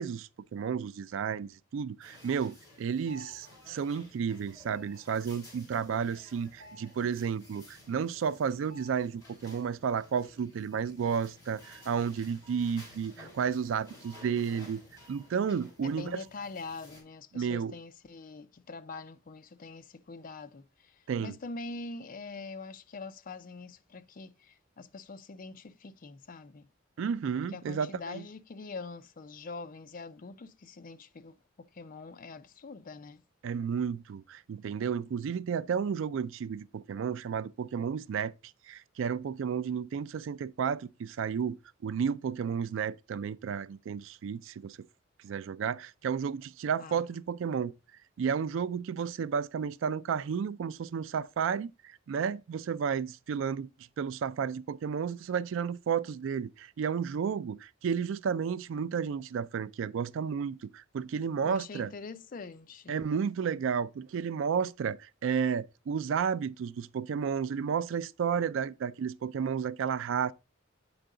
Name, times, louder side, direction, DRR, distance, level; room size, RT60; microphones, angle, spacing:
voice 1, 0.0-14.8 15.1-16.2 17.3-17.7 21.1-21.4 27.0-28.2 33.4-38.3 38.7-44.8 45.2-47.7 48.2-53.7 54.0-61.9 62.9-70.3, right 7 dB, 65° right, 0.3 m, -32 dB
sound 1, 2.0-17.0, left 1 dB, 20° left, 4.8 m, -54 dB
voice 2, 15.8-26.7 27.5-33.2 46.8-47.1 61.4-63.0, left 3 dB, 45° left, 0.4 m, -44 dB
7.9 x 4.6 x 3.7 m
head